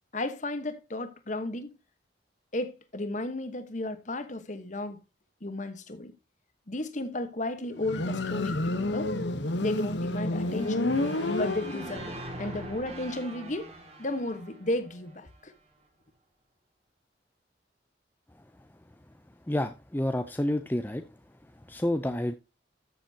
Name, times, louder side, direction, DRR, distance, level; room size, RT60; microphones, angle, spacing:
voice 1, 0.1-1.7 2.5-5.0 5.4-6.1 6.7-9.1 9.6-10.8 11.3-13.7 14.0-15.5, left 2 dB, 40° left, 1.2 m, -34 dB
Motorcycle, 7.8-12.2, left 2 dB, 75° left, 1.1 m, -29 dB
sound 1, 10.4-15.4, right 1 dB, 35° right, 2.4 m, -43 dB
voice 2, 19.5-21.0 21.7-22.3, left 1 dB, 10° left, 0.5 m, -29 dB
13.5 x 7.1 x 2.8 m
head